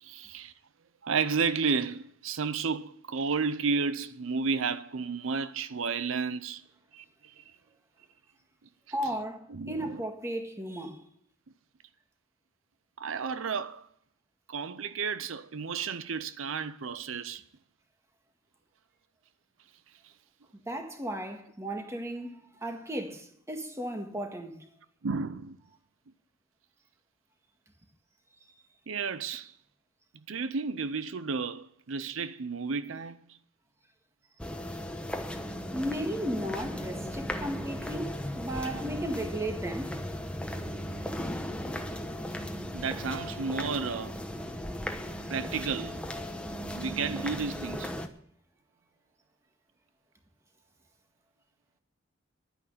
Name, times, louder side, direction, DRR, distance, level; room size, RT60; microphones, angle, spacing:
voice 1, 0.0-0.5 1.0-6.6 6.9-7.0 9.5-10.0 13.0-13.9 14.5-17.4 25.0-25.6 28.9-29.5 30.3-33.2 38.8-39.0 42.7-44.2 45.3-46.0 46.7-47.9, right 5 dB, 80° right, 0.6 m, -32 dB
voice 2, 8.9-11.0 20.7-24.6 35.7-40.0, right 1 dB, 15° right, 1.7 m, -35 dB
sound 1, 34.4-48.1, equal, 5° left, 1.0 m, -36 dB
11.0 x 9.9 x 6.7 m
head